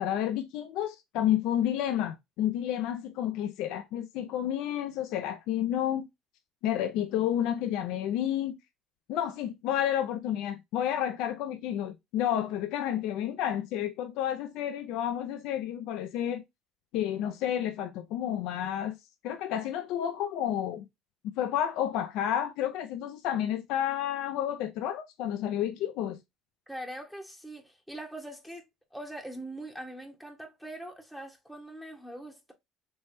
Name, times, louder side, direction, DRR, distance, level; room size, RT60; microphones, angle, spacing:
voice 1, 0.0-6.1 6.6-8.6 9.1-16.4 16.9-19.0 19.2-20.9 21.2-26.2, left 10 dB, 70° left, 0.4 m, -30 dB
voice 2, 26.7-28.6 28.9-32.5, right 1 dB, ahead, 1.0 m, -42 dB
3.4 x 3.1 x 2.6 m
supercardioid pair, 75°, 0 cm